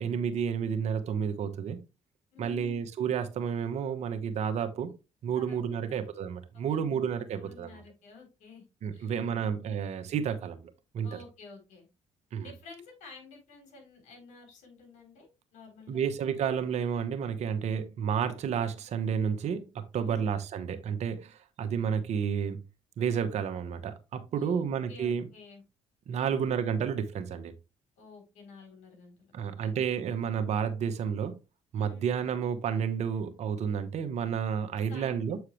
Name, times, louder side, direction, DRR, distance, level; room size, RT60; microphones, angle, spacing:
voice 1, 0.0-1.8 2.4-4.9 5.2-7.7 8.8-11.1 12.3-12.5 15.9-22.6 23.0-25.2 26.1-27.5 29.3-31.4 31.7-35.4, right 7 dB, 65° right, 1.2 m, -31 dB
voice 2, 2.3-2.8 5.3-6.1 6.7-7.0 7.3-8.6 8.9-9.8 11.0-11.9 12.4-16.1 19.9-20.3 24.4-25.6 26.1-26.5 28.0-29.7 31.8-32.2 34.9-35.2, left 4 dB, 80° left, 3.7 m, -51 dB
8.0 x 4.7 x 3.2 m
supercardioid pair, 70°, 12 cm